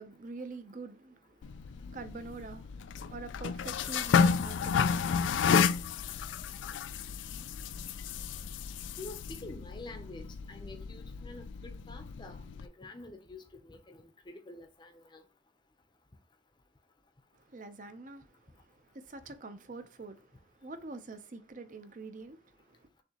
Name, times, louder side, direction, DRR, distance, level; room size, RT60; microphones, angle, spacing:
voice 1, 0.0-6.0 17.3-22.9, right 3 dB, 45° right, 0.6 m, -46 dB
sound 1, 1.4-12.7, left 6 dB, 85° left, 0.3 m, -32 dB
voice 2, 9.0-15.2, left 2 dB, 25° left, 0.7 m, -48 dB
6.5 x 2.8 x 2.9 m
head